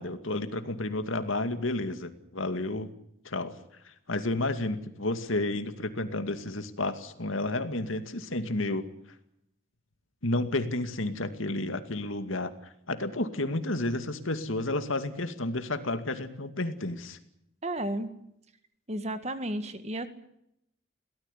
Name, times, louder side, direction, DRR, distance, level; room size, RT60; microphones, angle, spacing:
voice 1, 0.0-2.9 3.2-3.5 3.8-8.8 10.2-12.5 12.9-17.2, left 2 dB, 80° left, 9 dB, 2.3 m, -31 dB
voice 2, 17.6-18.1 18.9-20.1, right 1 dB, 30° right, 10 dB, 1.7 m, -32 dB
22.5 x 18.0 x 9.9 m, 0.77 s
head